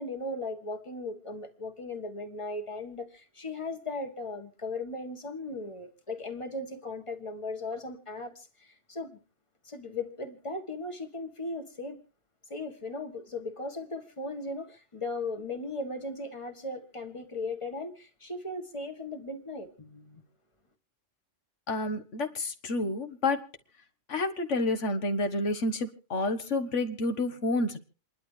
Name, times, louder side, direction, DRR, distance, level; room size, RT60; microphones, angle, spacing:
voice 1, 0.0-9.2 9.6-12.0 12.5-20.2, left 2 dB, 25° left, 6 dB, 1.7 m, -37 dB
voice 2, 21.7-23.5 24.1-27.8, left 2 dB, 75° left, 8 dB, 1.7 m, -29 dB
28.5 x 11.5 x 3.3 m, 0.39 s
omnidirectional pair, 1.3 m